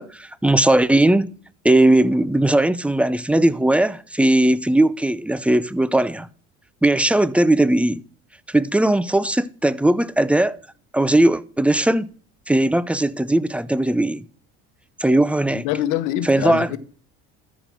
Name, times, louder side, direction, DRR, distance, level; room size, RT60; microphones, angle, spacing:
voice 1, 0.0-1.3 1.6-6.3 6.8-8.0 8.5-10.6 10.9-12.1 12.5-14.2 15.0-15.6 16.2-16.8, right 1 dB, 5° right, 0.6 m, -18 dB
voice 2, 15.5-16.8, left 12 dB, 80° left, 1.1 m, -24 dB
13.5 x 5.4 x 6.1 m
supercardioid pair, 100°, 32 cm